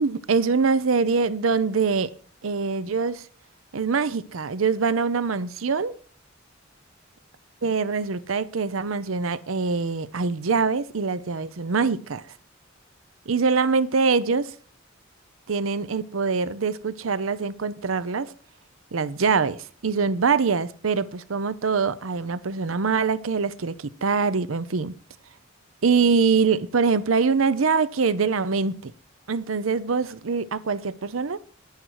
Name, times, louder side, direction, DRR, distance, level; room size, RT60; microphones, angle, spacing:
voice 1, 0.0-2.1 2.4-3.3 3.7-6.0 7.6-12.3 13.3-14.5 15.5-18.3 18.9-24.9 25.8-28.9 29.3-31.4, right 5 dB, 90° right, 0.7 m, -24 dB
10.5 x 10.5 x 4.7 m
head